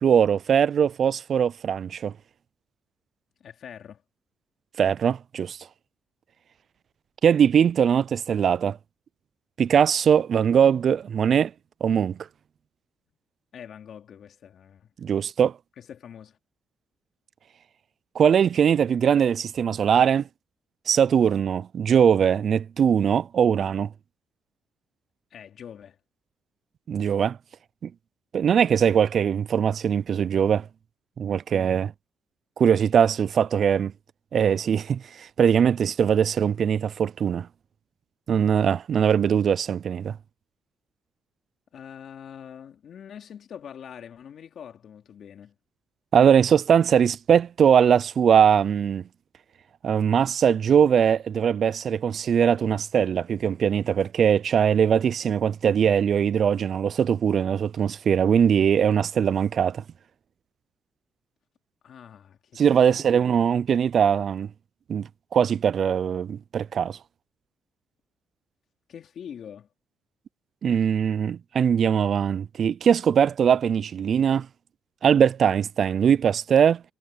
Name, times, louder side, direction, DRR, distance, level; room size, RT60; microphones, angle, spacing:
voice 1, 0.0-2.1 4.8-5.6 7.2-8.8 9.6-11.5 11.8-12.2 15.0-15.5 18.2-20.3 20.9-23.9 26.9-27.4 27.8-27.9 28.3-30.7 31.2-31.9 32.6-33.9 34.3-37.5 38.3-40.2 46.1-49.0 49.8-59.8 62.6-64.5 64.9-67.0 70.6-74.5 75.0-76.8, right 8 dB, 55° right, 0.3 m, -21 dB
voice 2, 3.4-4.0 13.5-14.9 15.8-16.4 25.3-26.0 41.7-45.5 61.8-63.2 68.9-69.7, left 8 dB, 60° left, 3.3 m, -44 dB
cardioid pair, 90°, 0 cm